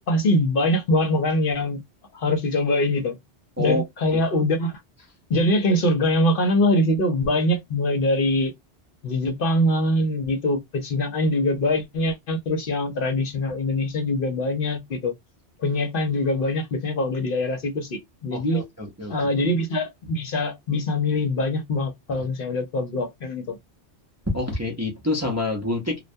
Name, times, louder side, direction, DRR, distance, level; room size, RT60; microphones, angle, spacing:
voice 1, 0.0-1.8 2.1-3.2 3.6-4.7 5.3-8.5 9.0-15.1 15.6-18.6 19.1-23.6, left 1 dB, 60° left, 0.8 m, -23 dB
voice 2, 18.3-19.2 22.1-22.2 24.3-26.0, left 2 dB, 20° right, 0.5 m, -27 dB
2.2 x 2.2 x 2.6 m
omnidirectional pair, 1.1 m